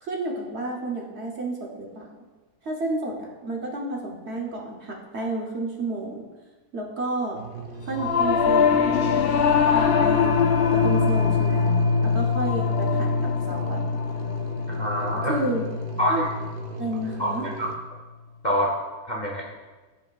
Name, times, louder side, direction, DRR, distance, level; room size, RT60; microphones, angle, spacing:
voice 1, 0.0-2.1 2.6-6.2 6.7-7.4 7.9-8.8 9.7-11.7 12.0-13.8 15.3-15.6 16.1-16.2 16.8-17.5, right 2 dB, 50° right, -1 dB, 1.0 m, -31 dB
sound 1, 7.3-17.8, right 5 dB, 70° right, 1.3 m, -38 dB
Singing / Musical instrument, 7.9-17.5, left 6 dB, 85° left, 0.5 m, -23 dB
voice 2, 14.7-15.4 16.0-16.3 17.2-17.3 17.6-17.7 18.4-18.7 19.1-19.4, equal, 40° left, -3 dB, 0.7 m, -25 dB
13.0 x 4.9 x 2.3 m, 1.3 s
omnidirectional pair, 1.6 m